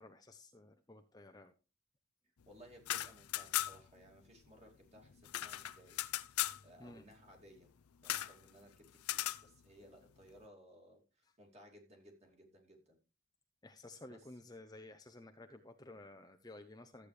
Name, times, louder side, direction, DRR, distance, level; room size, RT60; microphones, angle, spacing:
voice 1, 0.0-1.5 6.8-7.0 13.6-17.1, left 2 dB, 15° left, 7 dB, 0.6 m, -54 dB
voice 2, 2.5-6.0 6.6-7.7 8.0-13.0 14.1-14.3, equal, 30° right, 2 dB, 2.6 m, -60 dB
sound 1, 2.7-4.0 4.2-4.3 4.6-6.6 8.0-8.4 9.0-9.4, left 14 dB, 85° left, 0.5 m, -37 dB
13.5 x 8.4 x 3.2 m, 0.31 s
head